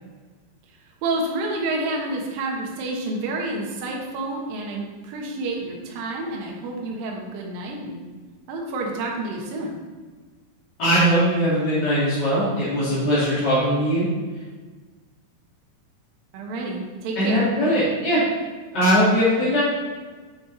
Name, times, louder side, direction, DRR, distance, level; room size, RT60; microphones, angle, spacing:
voice 1, 1.0-8.0 8.5-9.8 16.3-17.5, right 2 dB, 65° right, -1 dB, 2.5 m, -29 dB
voice 2, 10.8-14.1 17.2-18.2 18.7-19.6, equal, 35° left, -12 dB, 1.9 m, -20 dB
8.3 x 6.8 x 4.0 m, 1.4 s
omnidirectional pair, 5.6 m